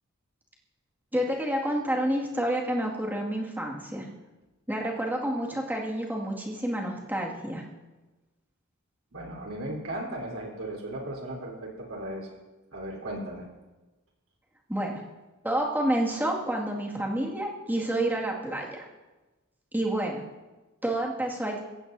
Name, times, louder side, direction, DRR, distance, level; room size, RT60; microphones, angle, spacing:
voice 1, 1.1-4.1 4.7-7.6 14.7-15.0 15.4-18.9 19.7-20.2 20.8-21.6, right 1 dB, 10° right, -2 dB, 2.1 m, -29 dB
voice 2, 9.1-12.3 12.7-13.5, right 1 dB, 65° right, -1 dB, 4.0 m, -36 dB
22.5 x 15.5 x 2.7 m, 1.2 s
head